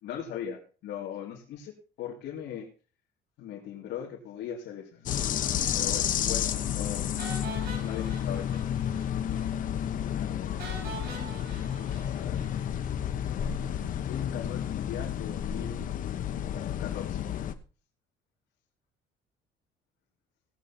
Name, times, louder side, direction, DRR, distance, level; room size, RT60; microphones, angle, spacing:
voice 1, 0.0-2.7 3.4-5.1 5.7-7.1 7.8-9.0 10.0-10.6 11.8-12.4 14.0-15.9 16.8-17.3, left 9 dB, 70° left, -3 dB, 2.7 m, -39 dB
sound 1, 5.1-17.5, left 10 dB, 45° left, 1.0 m, -31 dB
sound 2, 7.2-9.1 9.3-9.5 9.8-9.9 10.6-12.9, right 4 dB, 60° right, 5.7 m, -43 dB
18.0 x 7.7 x 4.3 m, 0.35 s
cardioid pair, 150°, 18 cm